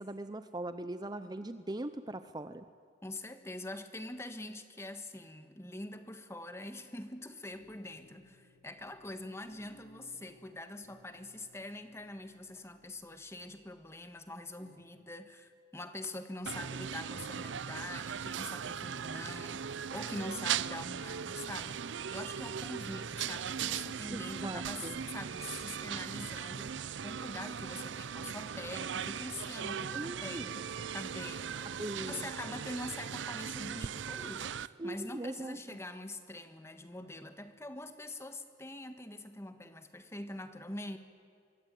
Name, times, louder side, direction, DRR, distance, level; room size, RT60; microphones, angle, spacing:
voice 1, 0.0-2.6 24.1-25.0 29.9-30.5 31.6-32.3 34.8-35.8, right 1 dB, 20° right, 11 dB, 0.6 m, -40 dB
voice 2, 3.0-41.0, left 1 dB, 15° left, 9 dB, 1.4 m, -44 dB
sound 1, 7.5-14.8, left 1 dB, 55° left, 4.3 m, -64 dB
sound 2, 16.5-34.7, right 7 dB, 75° right, 0.5 m, -39 dB
24.0 x 23.5 x 9.2 m, 2.5 s
head